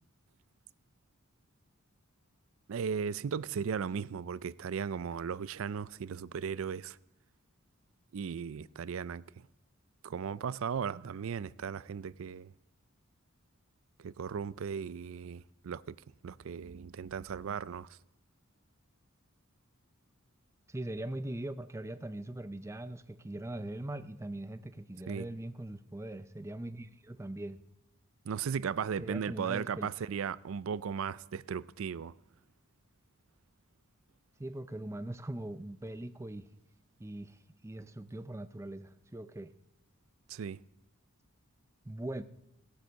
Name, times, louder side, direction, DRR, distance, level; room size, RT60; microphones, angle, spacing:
voice 1, 2.7-7.0 8.1-9.5 10.0-12.5 14.0-15.9 16.2-17.9 25.1-25.3 28.3-32.1 40.3-40.6, right 6 dB, 65° right, 0.4 m, -36 dB
voice 2, 20.7-27.6 29.0-29.9 34.4-36.5 37.0-39.5 41.8-42.2, right 1 dB, 15° right, 0.5 m, -41 dB
16.5 x 8.2 x 6.3 m
head